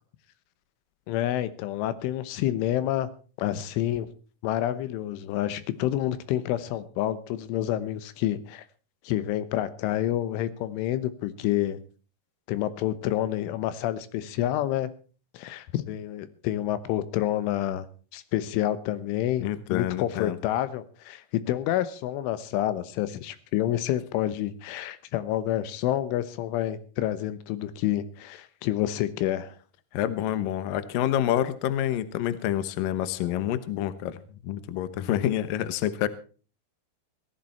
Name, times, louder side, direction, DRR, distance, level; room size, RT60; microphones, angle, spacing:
voice 1, 1.1-3.1 3.4-4.1 4.4-8.6 9.1-11.8 12.5-14.9 15.4-17.9 18.1-29.5, left 13 dB, 90° left, 14 dB, 3.6 m, -28 dB
voice 2, 19.4-20.4 29.9-34.2 34.4-36.1, left 12 dB, 75° left, 14 dB, 2.1 m, -27 dB
18.0 x 13.5 x 4.3 m, 0.37 s
omnidirectional pair, 5.4 m